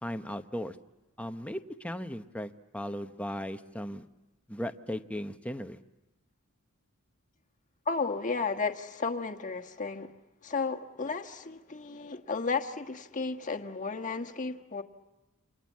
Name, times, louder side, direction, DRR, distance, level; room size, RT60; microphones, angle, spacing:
voice 1, 0.0-0.8 1.2-4.0 4.5-5.8, equal, 5° left, 8 dB, 0.9 m, -37 dB
voice 2, 7.9-10.1 10.4-14.8, left 4 dB, 35° left, 5 dB, 1.4 m, -33 dB
29.0 x 26.5 x 7.4 m, 0.99 s
head